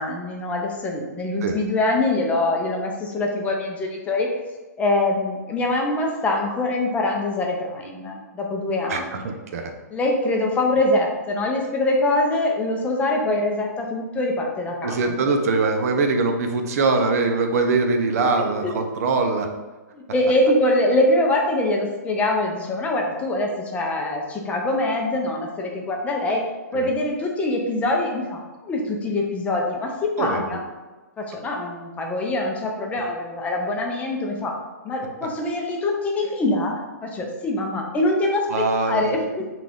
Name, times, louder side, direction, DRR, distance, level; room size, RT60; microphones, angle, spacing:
voice 1, 0.0-4.4 4.8-9.3 9.9-15.1 18.6-18.8 19.9-26.4 26.7-30.6 31.2-34.5 34.8-39.5, left 2 dB, 15° left, 0 dB, 0.6 m, -24 dB
voice 2, 8.9-9.7 14.8-19.5 26.7-26.9 30.2-30.4 38.5-39.2, right 3 dB, 55° right, 5 dB, 0.6 m, -22 dB
5.7 x 2.5 x 3.6 m, 1.2 s
hypercardioid pair, 140°, 10 cm